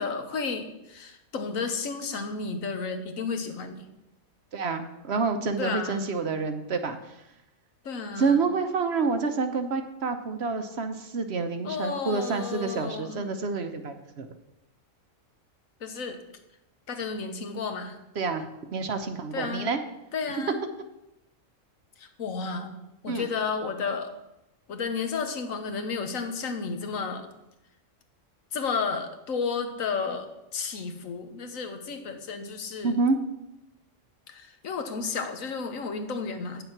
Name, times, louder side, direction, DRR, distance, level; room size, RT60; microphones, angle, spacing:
voice 1, 0.0-3.9 5.5-6.1 7.8-8.4 11.6-13.3 15.8-16.2 16.9-18.0 19.3-19.7 20.1-20.6 22.0-24.1 24.7-27.3 28.5-32.9 34.3-36.6, left 5 dB, 85° left, 7 dB, 1.4 m, -32 dB
voice 2, 4.5-7.2 8.2-14.3 18.2-19.8 20.3-20.4 23.1-23.3 32.8-33.2, right 4 dB, 55° right, 7 dB, 1.0 m, -28 dB
9.1 x 7.2 x 5.9 m, 0.91 s
omnidirectional pair, 1.4 m